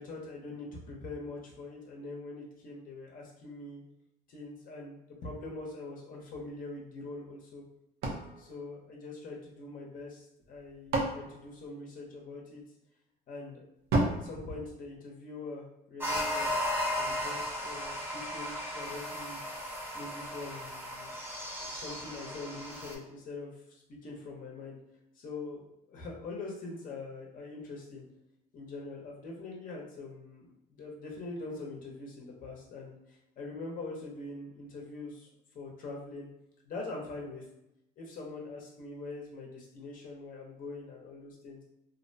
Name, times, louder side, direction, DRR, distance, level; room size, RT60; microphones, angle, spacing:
voice 1, 0.0-3.8 4.3-7.6 8.4-12.6 13.3-13.6 14.1-16.5 16.9-19.4 19.9-21.1 21.6-24.8 25.1-28.0 28.5-35.3 35.5-36.3 36.6-37.4 38.0-41.6, left 3 dB, 55° left, -2 dB, 0.7 m, -43 dB
sound 1, 8.0-9.6 10.4-12.4 13.9-15.5, right 2 dB, 75° right, 0.7 m, -34 dB
sound 2, 16.0-22.9, left 1 dB, 15° right, 0.7 m, -35 dB
2.5 x 2.1 x 2.6 m, 0.84 s
cardioid pair, 110°, 17 cm